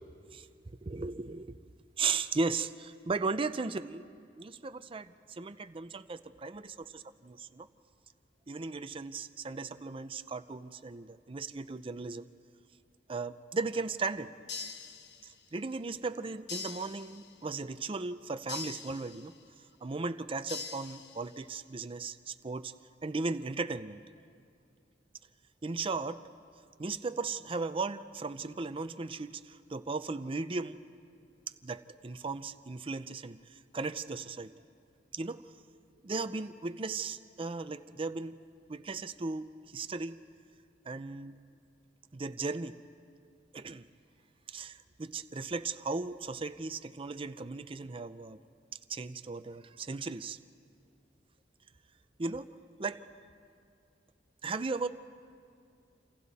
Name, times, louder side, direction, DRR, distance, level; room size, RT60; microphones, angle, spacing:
voice 1, 0.8-1.5 2.0-4.1 4.4-7.7 8.5-12.3 13.1-14.3 15.2-19.3 19.8-22.7 23.0-24.0 25.6-26.2 26.8-30.8 31.6-34.5 35.1-35.5 36.0-38.4 38.7-40.1 40.9-41.4 42.1-42.8 43.5-43.9 44.5-48.4 48.9-50.4 52.2-52.5 52.8-53.0 54.4-54.9, right 4 dB, 30° right, 11 dB, 0.5 m, -36 dB
sound 1, 14.5-15.6 16.5-17.5 18.5-19.5 20.5-21.5, left 5 dB, 65° left, 1.1 m, -43 dB
28.5 x 27.0 x 4.2 m, 2.3 s
head